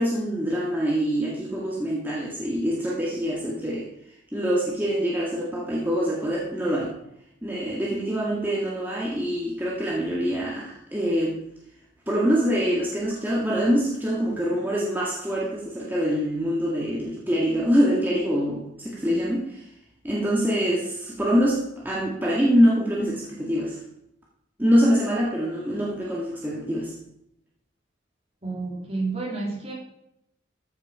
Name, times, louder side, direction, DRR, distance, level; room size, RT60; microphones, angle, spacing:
voice 1, 0.0-3.9 4.3-6.9 7.4-11.4 12.1-19.6 20.0-23.8 24.6-26.9, equal, 10° right, -5 dB, 1.9 m, -24 dB
voice 2, 28.4-29.7, right 3 dB, 35° right, -3 dB, 3.5 m, -30 dB
14.0 x 6.7 x 5.6 m, 0.80 s
head